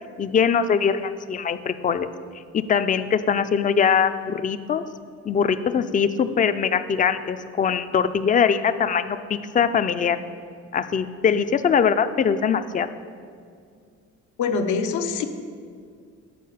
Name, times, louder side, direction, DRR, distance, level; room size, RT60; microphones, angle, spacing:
voice 1, 0.2-2.1 2.5-4.8 5.3-10.2 10.7-12.9, left 7 dB, 25° left, 11 dB, 0.4 m, -22 dB
voice 2, 14.4-15.2, left 5 dB, 75° left, 6 dB, 0.7 m, -24 dB
8.4 x 4.6 x 5.6 m, 2.2 s
cardioid pair, 90°, 30 cm